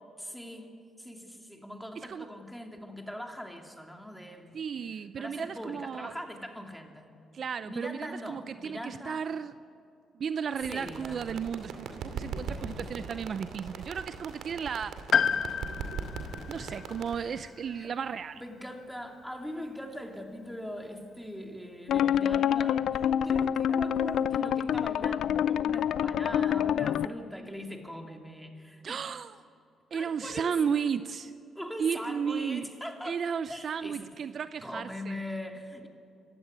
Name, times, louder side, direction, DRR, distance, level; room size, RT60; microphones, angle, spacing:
voice 1, 0.2-0.7 1.0-4.6 5.2-7.1 7.6-9.2 10.7-11.2 12.5-12.9 17.2-17.3 17.7-17.9 18.4-29.0 29.9-30.5 31.5-33.2 33.5-34.0 34.6-35.9, equal, ahead, 3 dB, 2.9 m, -41 dB
voice 2, 2.0-2.3 4.5-6.1 7.3-9.5 10.1-15.0 16.5-18.4 28.8-29.4 29.9-31.3 31.8-32.6 33.0-35.2, right 7 dB, 55° right, 13 dB, 0.6 m, -34 dB
sound 1, 10.6-17.2, right 5 dB, 80° right, 2.3 m, -40 dB
Piano, 15.1-19.0 19.3-19.4 20.5-20.6, left 7 dB, 55° left, 1.0 m, -32 dB
sound 2, 21.9-27.1, left 9 dB, 70° left, 0.5 m, -27 dB
25.0 x 16.0 x 9.8 m, 2.5 s
cardioid pair, 90°, 0 cm